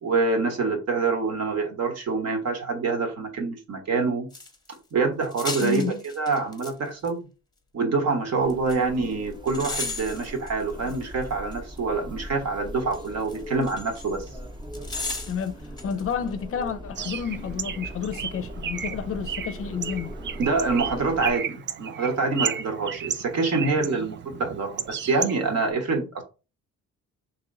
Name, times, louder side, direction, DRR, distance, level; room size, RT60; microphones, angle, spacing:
voice 1, 0.0-4.3 4.9-7.3 7.7-14.2 20.4-26.2, right 4 dB, 55° right, 1.2 m, -26 dB
sound 1, 4.3-4.8 5.2-6.7 7.0-7.1 8.5-8.8 9.5-11.8 12.9-14.3 14.7-16.0 16.3-16.4, left 3 dB, 15° left, 0.8 m, -35 dB
voice 2, 5.6-6.0 15.3-15.5 15.8-20.1, left 6 dB, 50° left, 0.5 m, -30 dB
sound 2, 8.4-21.3, equal, 15° right, 0.8 m, -40 dB
Bird, 16.9-25.7, right 8 dB, 40° right, 0.4 m, -34 dB
3.0 x 2.9 x 3.7 m
cardioid pair, 90°, 30 cm